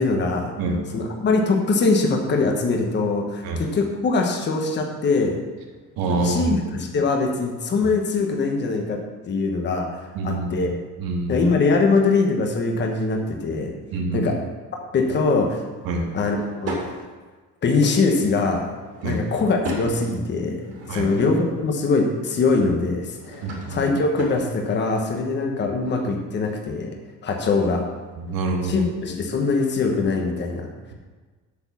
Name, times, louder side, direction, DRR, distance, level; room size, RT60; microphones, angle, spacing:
voice 1, 0.0-0.5 0.9-5.4 6.1-9.0 9.3-10.8 11.3-13.7 14.1-14.4 14.9-15.6 16.1-17.0 17.6-18.7 19.0-27.0 27.2-27.9 28.6-30.9, left 3 dB, 30° left, 2 dB, 1.2 m, -22 dB
voice 2, 6.0-6.6 10.1-11.5 13.9-14.3 15.8-16.1 19.0-19.2 20.9-21.1 23.4-23.8 28.2-28.9, right 2 dB, 75° right, 1 dB, 2.0 m, -26 dB
Drawer open or close / Wood, 15.9-16.9 18.6-19.9 20.5-21.6 22.9-24.5, equal, 45° right, 2.7 m, -34 dB
8.3 x 7.9 x 6.2 m, 1.3 s
cardioid pair, 180°, 36 cm